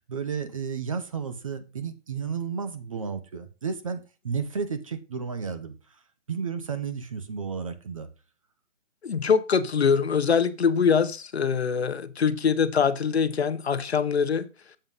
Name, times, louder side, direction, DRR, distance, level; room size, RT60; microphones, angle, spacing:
voice 1, 0.0-5.7 6.3-8.1, right 6 dB, 25° right, 0.8 m, -32 dB
voice 2, 9.0-14.5, left 6 dB, 55° left, 1.0 m, -23 dB
7.8 x 6.7 x 5.4 m
hypercardioid pair, 165°, 38 cm